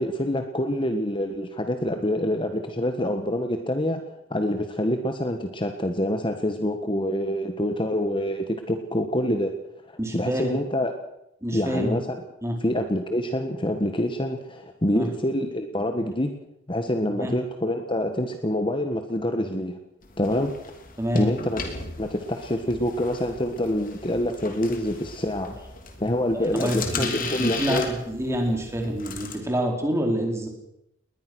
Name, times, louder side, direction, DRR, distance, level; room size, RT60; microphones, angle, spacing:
voice 1, 0.0-4.0 4.3-9.5 10.1-10.9 11.5-12.2 12.6-16.3 16.7-19.8 20.2-20.5 21.1-21.6 22.0-25.6 26.0-27.8, left 1 dB, 25° left, 6 dB, 1.6 m, -26 dB
voice 2, 10.0-10.5 11.4-12.0 12.4-12.6 14.9-15.2 17.2-17.3 21.0-21.3 26.3-30.5, equal, 15° right, 2 dB, 4.4 m, -27 dB
sound 1, 20.0-29.4, left 4 dB, 45° left, 3.2 m, -37 dB
20.5 x 20.0 x 6.3 m, 0.82 s
head